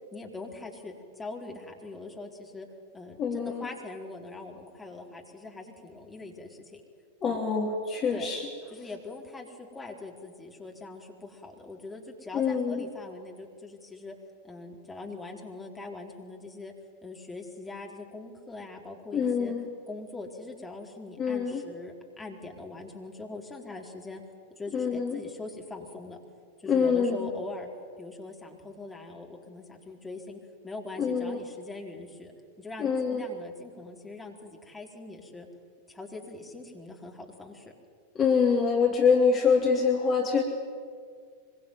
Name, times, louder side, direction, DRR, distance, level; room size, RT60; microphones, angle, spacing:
voice 1, 0.1-2.7 2.9-6.8 7.2-7.4 8.1-8.3 8.7-14.1 14.4-16.7 17.0-19.5 19.9-24.2 24.6-26.2 26.6-27.7 28.0-32.3 32.6-35.5 35.9-37.7, left 3 dB, 10° left, 0 dB, 4.3 m, -42 dB
voice 2, 3.2-3.7 7.2-8.5 8.8-8.9 12.3-12.8 19.1-19.6 21.2-21.6 24.7-25.2 26.6-27.3 31.0-31.4 32.8-33.2 38.1-40.4, left 5 dB, 30° left, 1 dB, 3.2 m, -25 dB
25.0 x 23.5 x 9.5 m, 2.1 s
figure-of-eight pair, 90°, 0 cm